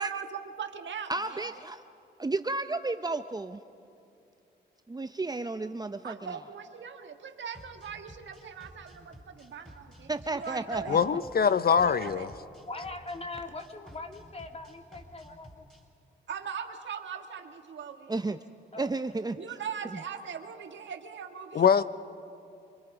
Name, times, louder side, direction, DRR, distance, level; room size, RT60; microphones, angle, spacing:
voice 1, 0.0-1.5 6.0-11.2 11.9-12.3 16.3-18.2 19.4-21.6, right 7 dB, 75° right, 6 dB, 1.7 m, -40 dB
voice 2, 1.1-1.8 2.2-3.6 4.9-6.4 10.1-11.0 18.1-18.4 18.8-19.6 19.8-20.0, right 3 dB, 20° right, 9 dB, 0.7 m, -33 dB
sound 1, 7.5-15.8, equal, 5° left, 5.1 m, -53 dB
voice 3, 10.9-12.3 21.5-21.8, left 7 dB, 55° left, 14 dB, 0.6 m, -23 dB
voice 4, 12.7-15.7 18.7-18.9, left 2 dB, 35° left, 3 dB, 2.5 m, -41 dB
27.5 x 22.0 x 5.0 m, 2.6 s
cardioid pair, 55°, 19 cm